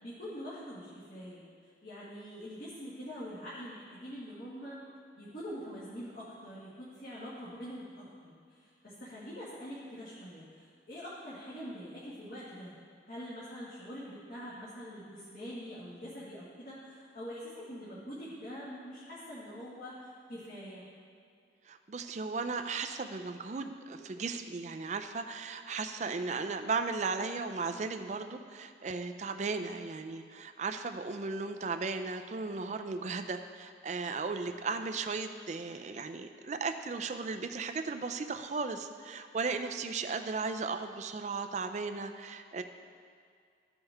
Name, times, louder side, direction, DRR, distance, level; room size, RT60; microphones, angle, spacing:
voice 1, 0.0-1.4 1.8-4.8 5.2-12.7 13.1-20.8, equal, 50° left, -9 dB, 1.6 m, -44 dB
voice 2, 21.7-42.6, right 4 dB, 40° right, 7 dB, 0.4 m, -36 dB
14.5 x 5.5 x 3.4 m, 2.2 s
head